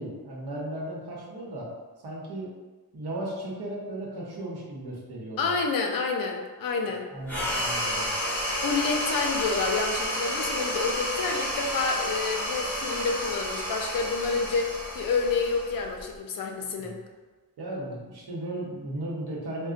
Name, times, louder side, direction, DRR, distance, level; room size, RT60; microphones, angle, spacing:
voice 1, 0.0-1.7 2.0-2.5 2.9-5.5 7.1-8.1 16.8-17.0 17.6-19.7, right 1 dB, 85° right, -4 dB, 0.9 m, -36 dB
voice 2, 5.4-7.1 8.6-17.0, left 4 dB, 65° left, 2 dB, 0.5 m, -28 dB
sound 1, 7.3-16.1, equal, 5° left, 0.9 m, -31 dB
3.8 x 2.1 x 2.4 m, 1.3 s
wide cardioid pair, 175°, 38 cm